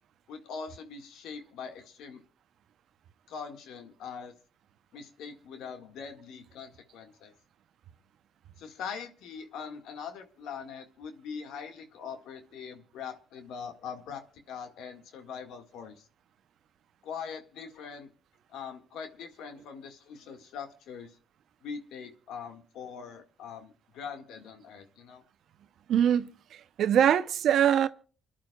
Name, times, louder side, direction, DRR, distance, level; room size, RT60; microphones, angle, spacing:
voice 1, 0.3-2.2 3.3-4.3 4.9-7.3 8.6-16.1 17.0-18.1 18.5-21.2 21.6-25.2, left 6 dB, 85° left, 1.8 m, -42 dB
voice 2, 25.9-27.9, right 9 dB, 70° right, 0.7 m, -23 dB
29.0 x 11.0 x 2.3 m
cardioid pair, 90°, 0 cm